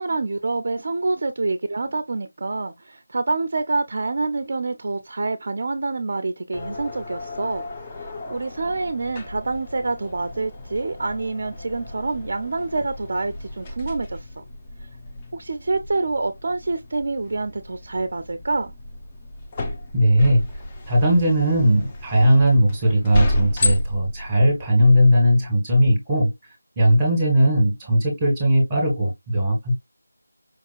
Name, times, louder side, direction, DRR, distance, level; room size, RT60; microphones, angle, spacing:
voice 1, 0.0-7.6 8.0-14.4 15.3-18.7, right 3 dB, 40° right, 0.5 m, -27 dB
sound 1, 6.5-25.4, left 1 dB, 15° left, 0.6 m, -32 dB
voice 2, 19.9-20.4 20.9-26.3 26.8-29.7, equal, 5° right, 1.7 m, -18 dB
5.2 x 2.8 x 2.3 m
figure-of-eight pair, 170°, 0 cm